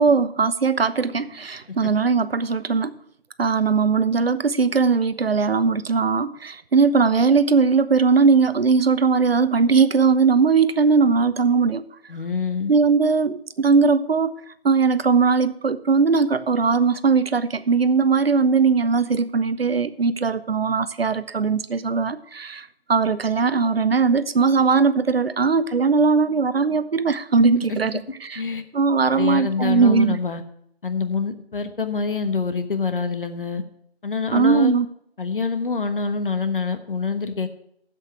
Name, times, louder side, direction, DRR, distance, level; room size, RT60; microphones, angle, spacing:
voice 1, 0.0-3.0 3.4-11.8 12.7-14.3 14.6-28.4 28.7-30.2 34.3-34.9, right 5 dB, 70° right, 15 dB, 0.8 m, -19 dB
voice 2, 12.1-12.7 28.3-28.6 29.1-30.4 30.8-33.6 34.0-34.7 35.2-37.5, left 5 dB, 60° left, 9 dB, 1.3 m, -25 dB
7.9 x 7.7 x 8.1 m, 0.70 s
figure-of-eight pair, 170°, 31 cm